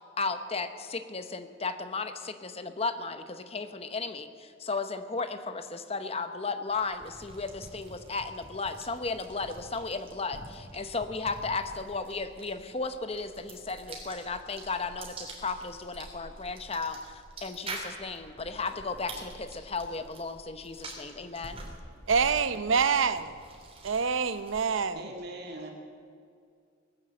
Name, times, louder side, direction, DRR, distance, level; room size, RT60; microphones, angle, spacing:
voice 1, 0.2-21.6, left 4 dB, 30° left, 9 dB, 0.9 m, -35 dB
sound 1, 6.7-24.9, right 2 dB, 30° right, 3.2 m, -46 dB
voice 2, 22.1-23.4 23.8-25.1, right 5 dB, 85° right, 13 dB, 0.7 m, -26 dB
voice 3, 24.9-25.7, right 1 dB, 55° right, 1 dB, 2.6 m, -41 dB
19.0 x 9.4 x 7.7 m, 2.2 s
head